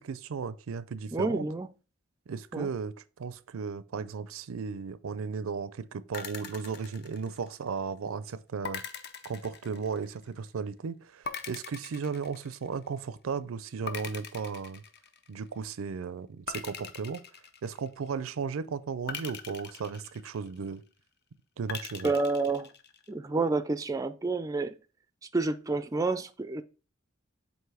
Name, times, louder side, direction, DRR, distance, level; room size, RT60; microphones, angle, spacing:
voice 1, 0.0-1.5 2.3-2.9 3.2-8.8 9.2-14.8 15.3-17.2 17.6-20.8 21.6-22.1, right 5 dB, 90° right, 0.5 m, -35 dB
voice 2, 1.1-1.7 2.5-2.7 22.0-22.7 23.1-24.7 25.3-26.6, right 3 dB, 15° right, 0.3 m, -29 dB
sound 1, 6.1-7.7 8.6-10.3 11.3-13.0 13.9-15.5 16.5-18.2 19.1-20.8 21.7-23.1, left 6 dB, 55° left, 0.7 m, -42 dB
7.9 x 2.6 x 4.8 m
head